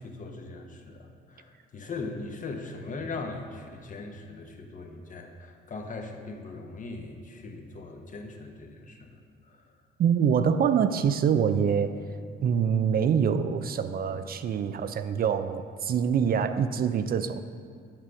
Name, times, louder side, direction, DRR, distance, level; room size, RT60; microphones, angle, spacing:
voice 1, 0.0-9.7, left 3 dB, 40° left, 3 dB, 1.0 m, -40 dB
voice 2, 10.0-11.9 12.4-17.4, right 7 dB, 50° right, 11 dB, 0.4 m, -25 dB
7.5 x 4.8 x 5.8 m, 2.2 s
cardioid pair, 90°, 20 cm